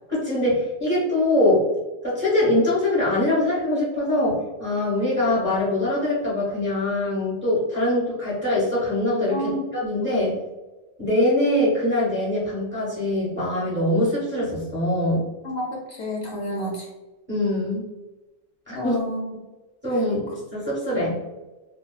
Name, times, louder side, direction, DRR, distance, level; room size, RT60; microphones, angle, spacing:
voice 1, 0.1-1.6 2.0-10.3 11.0-15.2 17.3-17.8 18.7-18.9 19.8-21.2, left 1 dB, 10° right, -8 dB, 0.8 m, -23 dB
voice 2, 9.3-9.6 10.0-10.3 15.4-16.9 18.7-19.2, equal, 70° left, -3 dB, 0.9 m, -30 dB
2.8 x 2.2 x 2.3 m, 1.1 s
omnidirectional pair, 1.3 m